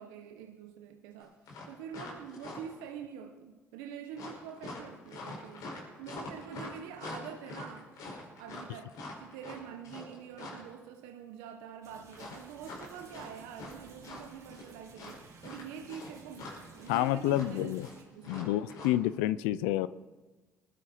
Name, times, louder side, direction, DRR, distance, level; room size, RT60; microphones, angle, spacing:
voice 1, 0.0-1.4 1.7-5.7 6.0-7.9 8.4-17.8 18.1-18.7, right 8 dB, 85° right, 6 dB, 1.0 m, -46 dB
sound 1, 1.2-1.3 1.5-2.8 4.2-10.7 12.1-13.7 14.0-14.7 15.0-18.9, left 2 dB, 70° left, 5.5 m, -44 dB
sound 2, 11.8-18.0, right 5 dB, 55° right, 3.2 m, -56 dB
voice 2, 16.9-17.9 18.3-19.9, left 14 dB, 85° left, 17 dB, 0.4 m, -29 dB
22.5 x 12.5 x 4.3 m, 1.3 s
supercardioid pair, 65°, 6 cm